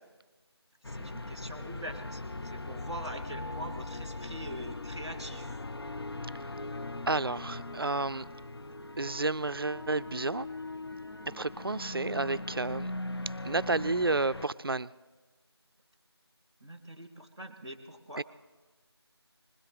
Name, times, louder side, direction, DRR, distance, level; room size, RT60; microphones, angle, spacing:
sound 1, 0.8-14.5, left 2 dB, 65° left, 0.5 m, -40 dB
voice 1, 0.8-5.5 16.6-18.2, right 1 dB, 10° left, -7 dB, 0.7 m, -43 dB
voice 2, 7.1-8.3 9.0-10.5 11.3-12.9 13.4-14.9 18.2-18.3, right 3 dB, 60° right, 16 dB, 0.4 m, -31 dB
21.0 x 17.0 x 4.0 m, 1.3 s
figure-of-eight pair, 175°, 14 cm